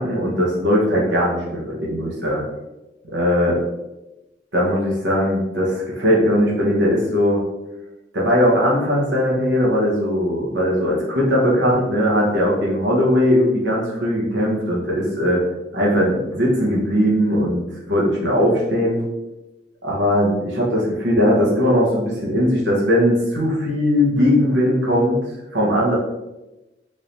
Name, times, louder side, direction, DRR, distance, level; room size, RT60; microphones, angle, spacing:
voice 1, 0.0-2.4 3.1-3.5 4.5-7.4 8.1-15.4 15.7-17.6 17.9-19.0 19.8-25.2 25.5-25.9, equal, 80° right, -4 dB, 1.2 m, -19 dB
3.7 x 3.2 x 2.7 m, 1.0 s
head